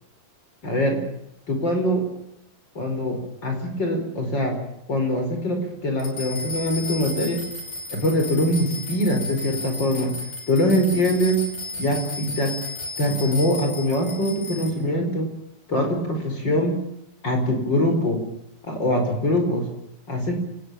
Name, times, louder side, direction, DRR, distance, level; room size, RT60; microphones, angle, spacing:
voice 1, 0.6-1.0 1.5-2.0 2.8-4.6 4.9-7.4 7.9-10.1 10.5-11.4 11.8-12.5 13.0-15.3 15.7-16.8 17.2-18.2 18.6-19.7 20.1-20.4, left 1 dB, 25° left, 4 dB, 5.2 m, -23 dB
sound 1, 6.0-14.7, left 2 dB, 45° left, 6.6 m, -34 dB
30.0 x 19.0 x 7.1 m, 0.78 s
omnidirectional pair, 4.7 m